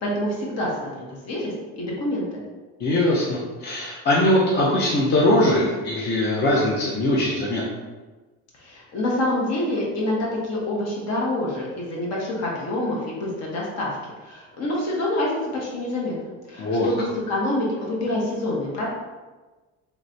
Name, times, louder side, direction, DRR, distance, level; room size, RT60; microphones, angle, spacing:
voice 1, 0.0-2.4 8.6-13.9 14.2-16.1 16.5-18.9, left 1 dB, 55° left, -3 dB, 1.0 m, -27 dB
voice 2, 2.8-7.6 16.6-16.9, left 1 dB, 35° left, -5 dB, 0.5 m, -21 dB
3.2 x 3.1 x 2.6 m, 1.2 s
cardioid pair, 150°, 30 cm